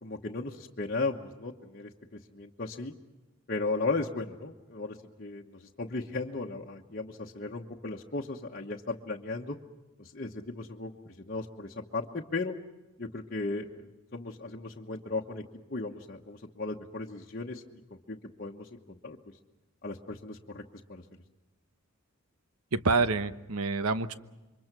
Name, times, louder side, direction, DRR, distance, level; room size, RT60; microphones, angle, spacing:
voice 1, 0.0-2.9 3.5-9.6 10.0-12.5 13.0-15.4 15.7-17.6 17.9-19.2 19.8-20.6 20.9-21.0, left 3 dB, 40° left, -2 dB, 1.2 m, -36 dB
voice 2, 22.7-24.1, right 3 dB, 80° right, 12 dB, 1.0 m, -27 dB
28.5 x 24.0 x 6.1 m, 1.1 s
head